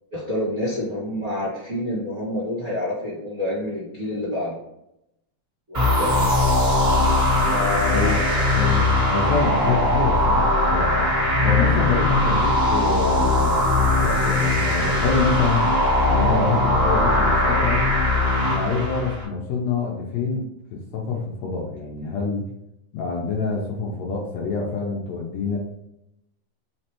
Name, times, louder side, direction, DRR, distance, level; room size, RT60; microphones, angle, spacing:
voice 1, 0.1-4.6 5.7-6.2 7.4-8.5 11.9-12.0, left 1 dB, 65° right, -9 dB, 0.7 m, -28 dB
sound 1, 5.7-19.2, left 1 dB, 30° right, 1.4 m, -20 dB
voice 2, 7.9-11.0 11.4-15.7 16.0-17.8 18.5-20.4 20.7-22.4 22.9-25.6, left 4 dB, 75° left, -1 dB, 1.7 m, -26 dB
5.0 x 3.2 x 2.9 m, 0.84 s
omnidirectional pair, 3.7 m